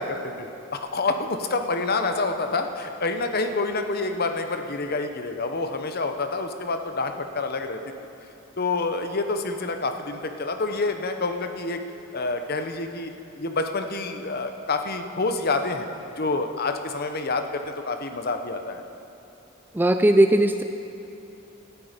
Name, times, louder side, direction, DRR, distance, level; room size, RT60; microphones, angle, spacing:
voice 1, 0.0-7.8 8.6-11.8 12.1-13.1 13.4-15.9 16.2-18.8, left 3 dB, 45° left, 6 dB, 0.9 m, -27 dB
voice 2, 19.7-20.6, right 1 dB, 10° right, 8 dB, 0.3 m, -18 dB
18.0 x 11.5 x 5.2 m, 2.8 s
head